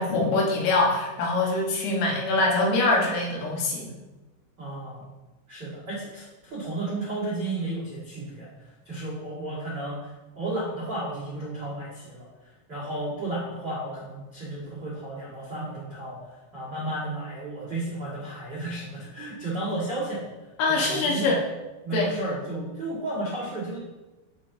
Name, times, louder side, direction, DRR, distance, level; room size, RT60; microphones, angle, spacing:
voice 1, 0.0-3.9 20.6-21.4 21.9-22.1, left 2 dB, 85° left, -1 dB, 3.9 m, -24 dB
voice 2, 4.6-5.0 5.5-8.5 8.8-12.3 12.7-16.2 16.5-20.3 20.7-21.4 21.8-23.8, right 2 dB, 70° right, -8 dB, 1.0 m, -33 dB
13.0 x 5.2 x 2.7 m, 1.1 s
omnidirectional pair, 5.5 m